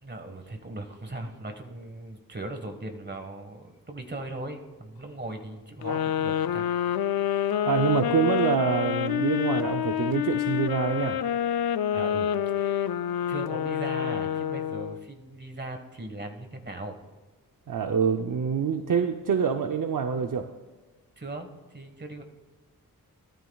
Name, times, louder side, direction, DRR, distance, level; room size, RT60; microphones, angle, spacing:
voice 1, 0.0-6.7 11.9-12.9 13.3-17.0 21.2-22.2, right 2 dB, 30° right, 6 dB, 1.5 m, -39 dB
sound 1, 5.8-15.0, left 10 dB, 80° left, 0.5 m, -27 dB
voice 2, 7.7-11.2 17.7-20.5, right 7 dB, 60° right, 5 dB, 0.7 m, -26 dB
18.5 x 13.5 x 2.4 m, 1.3 s
wide cardioid pair, 75°, 36 cm